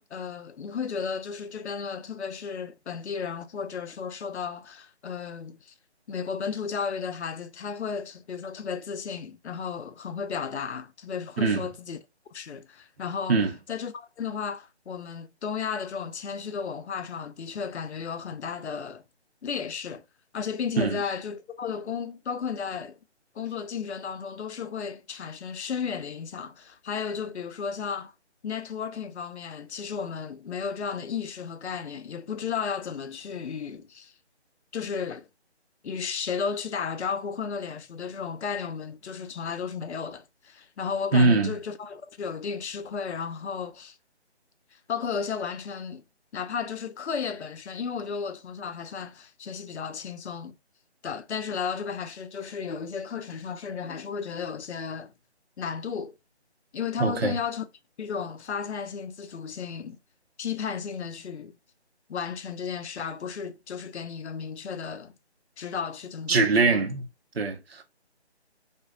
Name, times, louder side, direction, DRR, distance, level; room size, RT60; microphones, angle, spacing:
voice 1, 0.0-5.7 6.1-12.0 12.3-13.4 13.7-19.0 19.4-20.0 20.3-23.0 23.4-28.1 28.4-34.1 34.7-35.3 35.8-44.0 44.9-46.0 46.3-50.5 51.0-55.1 55.6-56.1 56.7-57.7 58.0-60.0 60.4-61.5 62.1-65.1 65.6-66.8, left 6 dB, 75° left, 0.5 m, -34 dB
voice 2, 11.4-11.7 13.3-13.5 20.8-21.0 41.1-41.5 57.0-57.4 66.3-67.1 67.3-67.8, right 4 dB, 60° right, 0.6 m, -22 dB
2.8 x 2.5 x 2.3 m
figure-of-eight pair, 160°, 34 cm